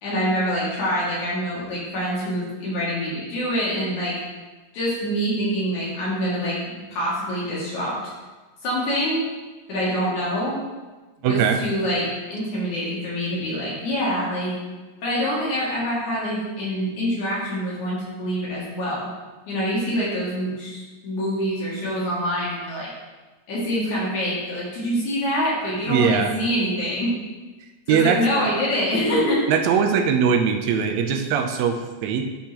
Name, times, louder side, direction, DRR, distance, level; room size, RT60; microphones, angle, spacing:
voice 1, 0.0-4.1 4.7-8.1 8.6-9.2 9.7-10.6 11.2-14.5 15.0-19.1 19.5-22.9 23.5-27.2 27.9-29.4, equal, 80° left, -7 dB, 3.7 m, -25 dB
voice 2, 11.2-11.6 25.8-26.3 27.9-28.2 29.1-32.2, right 6 dB, 80° right, 6 dB, 1.8 m, -21 dB
10.0 x 5.5 x 3.0 m, 1.2 s
omnidirectional pair, 3.3 m